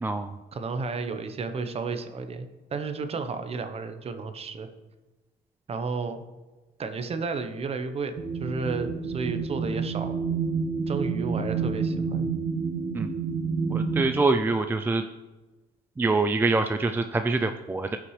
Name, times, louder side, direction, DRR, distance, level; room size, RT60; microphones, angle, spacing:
voice 1, 0.0-0.3 12.9-13.1 13.7-15.0 16.0-18.0, right 3 dB, 10° right, 8 dB, 0.4 m, -25 dB
voice 2, 0.5-4.7 5.7-6.2 6.8-10.1 10.9-12.3, right 4 dB, 35° right, 8 dB, 0.9 m, -32 dB
sound 1, 8.2-14.1, right 5 dB, 65° right, 1.5 m, -29 dB
16.0 x 6.0 x 3.2 m, 1.2 s
cardioid pair, 110°, 17 cm